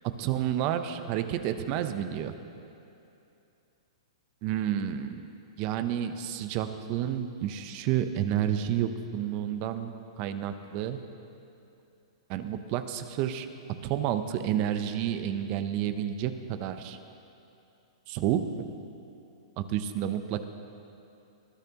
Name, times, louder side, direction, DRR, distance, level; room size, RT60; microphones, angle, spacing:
voice 1, 0.2-2.3 4.4-5.2 5.6-11.0 12.3-13.5 13.8-17.0 18.1-18.7 19.6-20.5, right 10 dB, 40° right, 10 dB, 0.7 m, -30 dB
21.0 x 12.0 x 2.9 m, 2.7 s
hypercardioid pair, 130°, 3 cm